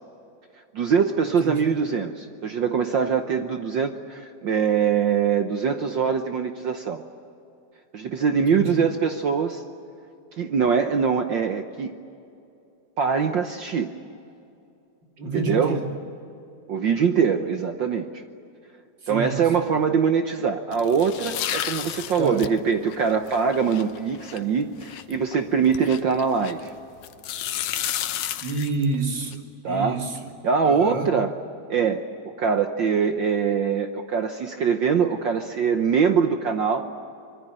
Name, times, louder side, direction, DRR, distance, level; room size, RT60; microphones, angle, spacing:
voice 1, 0.7-7.0 7.9-9.6 10.4-12.0 13.0-13.9 15.2-15.8 16.7-18.1 19.1-26.7 29.6-30.0 30.4-31.3 31.7-36.9, right 6 dB, 70° right, 6 dB, 1.1 m, -23 dB
voice 2, 8.5-8.8 15.2-15.8 19.0-19.5 22.2-22.4 28.4-30.1 30.6-31.1, right 3 dB, 35° right, 2 dB, 3.3 m, -28 dB
sound 1, 20.7-26.7 27.0-29.4, left 11 dB, 80° left, 2.4 m, -32 dB
25.5 x 23.0 x 8.9 m, 2.6 s
omnidirectional pair, 3.3 m